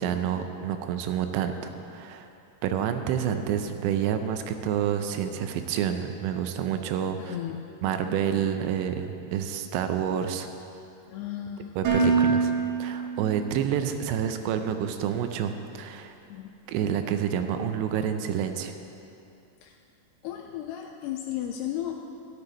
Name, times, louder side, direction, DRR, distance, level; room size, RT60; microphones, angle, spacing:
voice 1, 0.0-2.3 2.6-7.4 7.8-10.5 11.8-12.5 12.8-16.2 16.7-18.7, right 9 dB, 85° right, 7 dB, 2.8 m, -28 dB
voice 2, 7.2-7.7 8.0-8.1 11.1-11.8 12.2-12.3 16.3-16.6 19.6-19.8 20.2-22.0, left 11 dB, 85° left, 3 dB, 2.4 m, -35 dB
Dishes pots and pans, 11.9-13.9, right 5 dB, 65° right, 3.5 m, -25 dB
13.0 x 12.0 x 4.2 m, 2.7 s
omnidirectional pair, 5.2 m